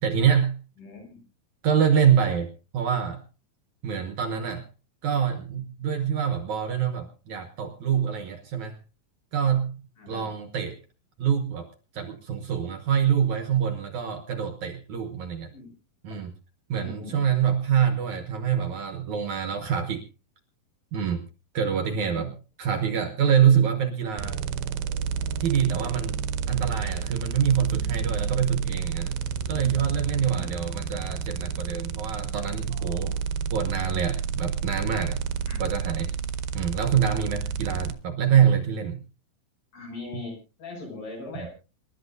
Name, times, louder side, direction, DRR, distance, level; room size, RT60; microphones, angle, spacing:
voice 1, 0.0-0.6 1.6-3.2 3.8-4.6 5.0-8.8 9.3-9.7 10.1-10.8 11.2-15.5 16.0-16.3 16.7-20.0 20.9-21.2 21.5-22.3 22.6-24.4 25.4-26.2 26.5-29.1 29.5-33.1 33.5-35.2 35.6-36.1 36.5-39.0 41.4-41.5, right 8 dB, 65° right, 7 dB, 2.1 m, -25 dB
voice 2, 0.8-1.2 10.0-10.3 15.5-15.7 16.8-17.3 21.8-22.3 29.5-29.9 30.3-30.5 32.7-33.2 35.5-35.6 39.7-41.5, left 3 dB, 70° left, 1 dB, 8.8 m, -41 dB
sound 1, 24.2-37.9, right 6 dB, 80° right, 2.8 m, -30 dB
27.0 x 12.5 x 2.6 m, 0.32 s
omnidirectional pair, 4.4 m